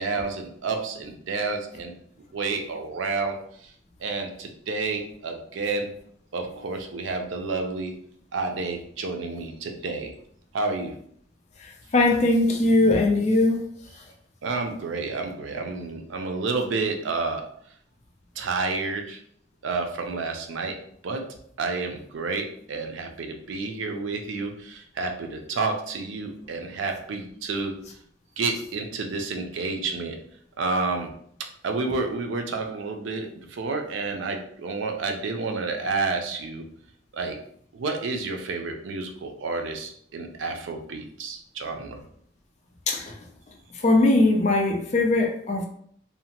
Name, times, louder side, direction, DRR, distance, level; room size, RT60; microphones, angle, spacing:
voice 1, 0.0-1.9 2.3-3.4 3.6-3.7 4.0-5.9 6.3-8.0 8.3-10.1 10.5-10.9 14.4-17.4 18.4-19.2 19.6-20.8 21.0-21.2 21.6-27.7 28.4-30.2 30.6-31.1 31.6-36.6 37.1-37.4 37.7-42.0, right 3 dB, 85° right, 4 dB, 0.5 m, -30 dB
voice 2, 11.9-13.6 42.9-43.1 43.8-45.7, left 2 dB, 35° left, 2 dB, 0.4 m, -20 dB
2.7 x 2.1 x 2.8 m, 0.65 s
head